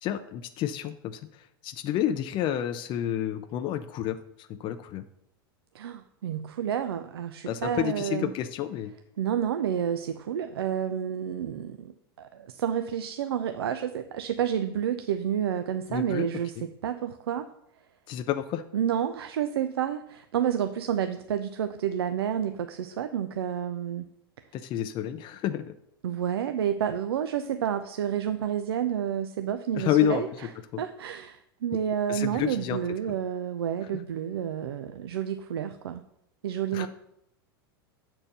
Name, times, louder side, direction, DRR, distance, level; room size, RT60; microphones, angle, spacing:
voice 1, 0.0-5.0 7.5-8.9 15.9-16.3 16.6-16.7 18.1-18.6 24.5-25.7 29.7-30.2 30.7-30.8 32.1-32.8 36.7-36.9, left 10 dB, 40° left, 9 dB, 0.5 m, -29 dB
voice 2, 5.7-8.3 9.2-11.9 12.2-17.5 18.7-24.1 26.0-30.3 30.8-36.0 36.4-36.9, right 9 dB, 80° right, 9 dB, 0.5 m, -30 dB
7.3 x 4.5 x 6.7 m, 0.78 s
hypercardioid pair, 105°, 13 cm